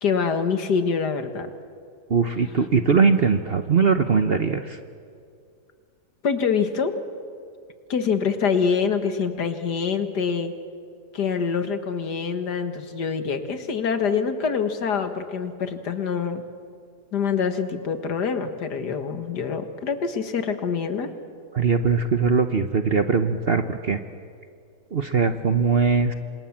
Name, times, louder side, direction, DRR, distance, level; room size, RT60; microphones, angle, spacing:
voice 1, 0.0-1.5 6.2-6.9 7.9-10.5 11.1-16.4 17.1-21.1, left 6 dB, 75° left, 8 dB, 2.2 m, -25 dB
voice 2, 2.1-4.8 21.5-24.0 24.9-26.1, right 5 dB, 45° right, 8 dB, 1.0 m, -21 dB
28.0 x 26.5 x 7.3 m, 2.2 s
omnidirectional pair, 1.8 m